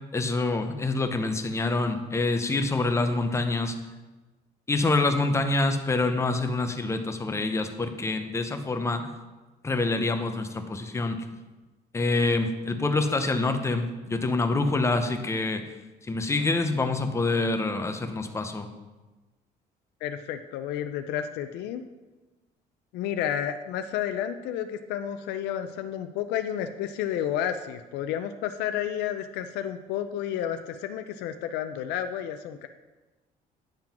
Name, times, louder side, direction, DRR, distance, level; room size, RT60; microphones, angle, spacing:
voice 1, 0.1-3.8 4.7-9.1 9.6-11.3 11.9-15.6 16.0-18.7, left 3 dB, 15° left, 6 dB, 0.7 m, -26 dB
voice 2, 20.0-21.8 22.9-32.7, left 10 dB, 90° left, 8 dB, 0.4 m, -31 dB
8.9 x 3.7 x 5.9 m, 1.2 s
cardioid pair, 110°, 17 cm